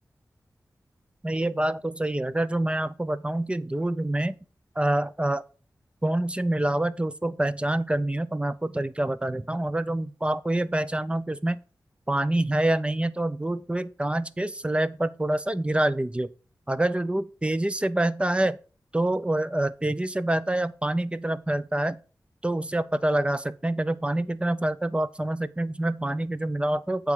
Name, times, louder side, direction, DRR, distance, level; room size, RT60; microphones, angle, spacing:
voice 1, 1.2-4.3 4.8-5.4 6.0-11.6 12.1-16.3 16.7-18.6 18.9-22.0 22.4-27.1, right 1 dB, 15° right, 0.5 m, -26 dB
8.7 x 3.6 x 6.5 m
wide cardioid pair, 70°, 7 cm